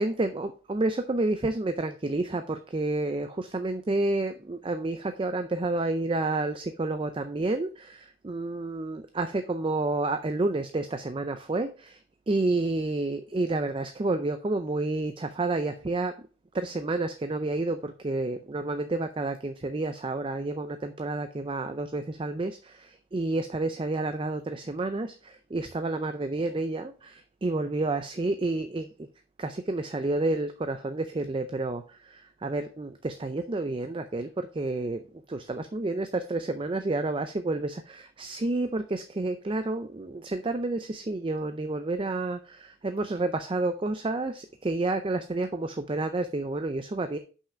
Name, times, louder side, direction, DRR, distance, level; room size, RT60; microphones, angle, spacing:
voice 1, 0.0-12.0 12.3-16.2 16.5-29.1 29.4-47.2, right 2 dB, 25° right, 9 dB, 0.4 m, -30 dB
5.7 x 5.6 x 4.9 m, 0.37 s
head